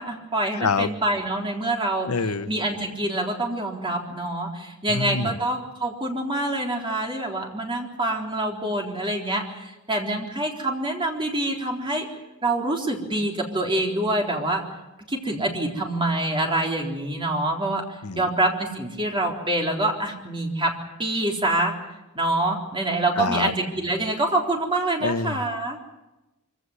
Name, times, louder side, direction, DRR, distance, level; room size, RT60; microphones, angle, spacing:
voice 1, 0.0-2.1 2.5-12.0 12.4-14.6 15.1-17.8 18.1-20.7 21.0-21.7 22.2-25.8, right 1 dB, 25° right, 1 dB, 3.9 m, -26 dB
voice 2, 0.6-0.9 2.1-2.5 4.9-5.4 18.0-18.3 23.2-23.5 25.0-25.4, left 4 dB, 85° left, 13 dB, 0.9 m, -26 dB
24.5 x 16.5 x 9.8 m, 1.0 s
head